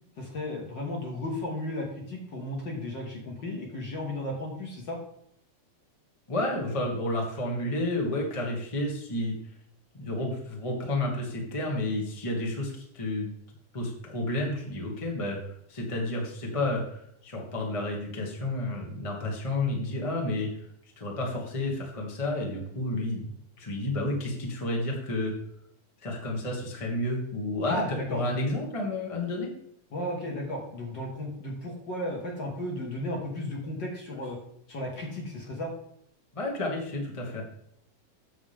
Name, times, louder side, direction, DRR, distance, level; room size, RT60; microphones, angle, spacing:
voice 1, 0.2-5.0 27.6-28.2 29.9-34.4 34.7-35.7, left 1 dB, 45° left, 0 dB, 1.7 m, -34 dB
voice 2, 6.3-9.3 9.9-13.3 13.7-20.6 21.0-23.3 23.6-25.3 26.0-29.5 36.3-37.4, left 1 dB, 20° left, -1 dB, 0.8 m, -31 dB
8.6 x 7.1 x 3.5 m, 0.72 s
omnidirectional pair, 3.4 m